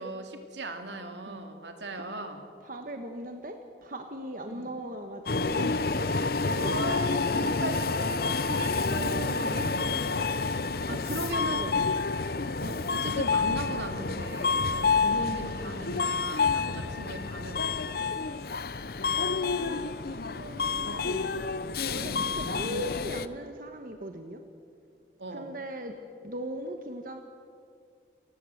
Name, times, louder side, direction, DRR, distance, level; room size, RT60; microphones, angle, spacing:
voice 1, 0.0-2.4 4.4-4.7 6.1-6.3 6.5-10.5 10.9-11.6 12.6-18.4 22.1-22.3 25.2-25.6, right 1 dB, 85° right, 5 dB, 2.6 m, -38 dB
voice 2, 2.6-5.8 6.4-7.0 7.3-7.6 9.4-9.7 10.9-11.3 11.6-11.7 19.1-21.4 21.9-24.4 25.3-25.9 26.2-27.2, equal, 50° right, 5 dB, 1.4 m, -39 dB
Subway metro underground, 5.3-23.3, left 4 dB, 55° left, 0.7 m, -29 dB
29.0 x 15.5 x 8.0 m, 2.2 s
head